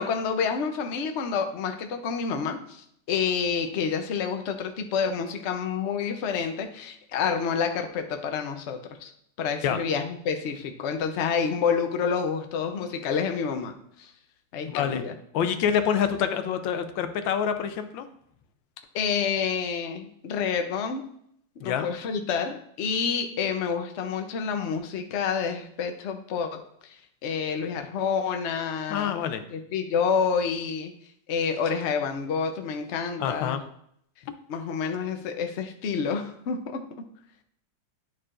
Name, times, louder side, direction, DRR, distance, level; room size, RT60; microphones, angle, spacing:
voice 1, 0.0-9.1 9.4-14.1 14.5-15.1 18.9-21.1 21.6-26.9 27.2-29.1 29.5-30.9 31.3-33.6 34.5-36.8, left 6 dB, 60° left, 5 dB, 0.7 m, -28 dB
voice 2, 14.7-15.0 15.3-18.1 21.6-21.9 28.9-29.4 33.2-33.6 34.3-34.4, left 8 dB, 85° left, 9 dB, 1.4 m, -26 dB
11.0 x 4.6 x 2.5 m, 0.69 s
omnidirectional pair, 2.0 m